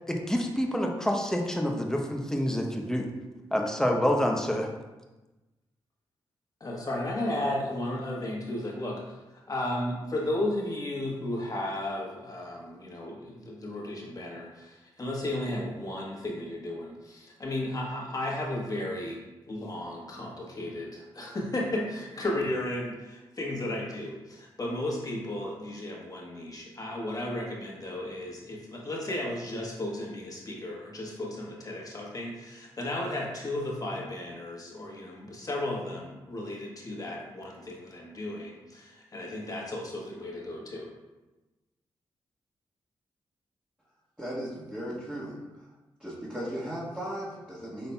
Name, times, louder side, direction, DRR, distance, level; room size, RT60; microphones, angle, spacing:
voice 1, 0.1-3.1 3.5-4.7, equal, 5° left, 1 dB, 0.8 m, -27 dB
voice 2, 6.6-40.9, left 1 dB, 35° left, -3 dB, 1.3 m, -34 dB
voice 3, 44.2-45.4 46.0-47.9, equal, 10° right, -10 dB, 1.5 m, -36 dB
5.3 x 3.9 x 2.3 m, 1.1 s
supercardioid pair, 45°, 10 cm